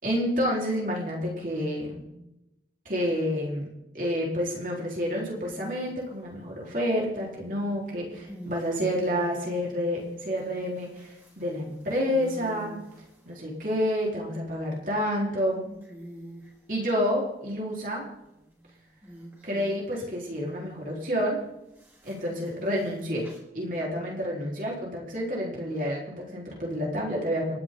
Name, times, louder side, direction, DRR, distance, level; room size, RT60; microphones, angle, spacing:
voice 1, 0.0-2.0 2.8-3.7 3.9-12.8 13.2-15.6 16.7-18.1 19.4-21.4 22.0-23.3 23.5-27.6, equal, 50° right, -3 dB, 4.7 m, -29 dB
sound 1, 5.0-6.4 7.7-13.6 14.2-14.9 15.3-15.4 15.6-16.6 17.9-20.3 21.7-23.4, equal, 10° right, 4.1 m, -47 dB
29.5 x 11.0 x 4.0 m, 0.90 s
head